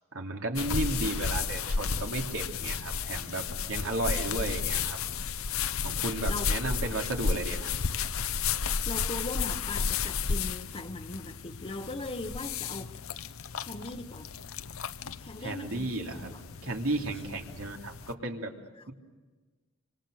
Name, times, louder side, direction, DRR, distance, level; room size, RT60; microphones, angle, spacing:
voice 1, 0.1-5.0 5.8-7.7 15.4-16.3 16.6-18.6, right 2 dB, 75° right, 2 dB, 3.0 m, -33 dB
sound 1, 0.6-18.1, left 6 dB, 75° left, 0.8 m, -33 dB
voice 2, 8.8-13.0 13.6-14.3 15.2-16.4 17.5-17.6, left 2 dB, 25° left, 3 dB, 1.0 m, -39 dB
26.5 x 26.0 x 6.5 m, 1.3 s
head